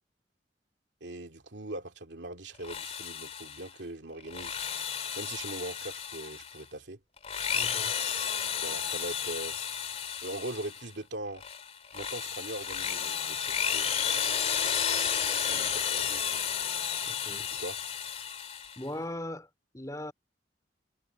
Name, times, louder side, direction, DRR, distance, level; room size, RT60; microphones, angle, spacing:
voice 1, 1.0-4.6 5.2-7.0 8.6-9.6 10.2-11.4 11.9-13.9 15.5-16.4 17.6-17.8, right 1 dB, 85° right, 2.5 m, -40 dB
Drill, 2.5-3.7 4.2-6.6 7.2-10.9 11.4-18.8, left 7 dB, 35° left, 2.7 m, -32 dB
voice 2, 7.5-7.9 17.1-17.5 18.8-19.5 19.7-20.1, left 1 dB, 20° left, 4.6 m, -39 dB
head